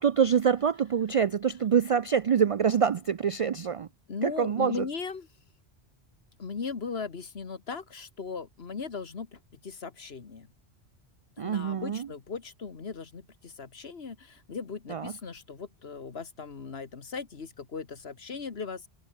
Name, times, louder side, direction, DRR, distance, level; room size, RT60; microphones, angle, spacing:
voice 1, 0.0-3.9 4.2-4.8 11.4-12.1 14.9-15.1, right 7 dB, 65° right, 0.3 m, -25 dB
voice 2, 4.1-5.3 6.4-10.5 11.4-18.9, left 5 dB, 70° left, 1.8 m, -38 dB
omnidirectional pair, 1.1 m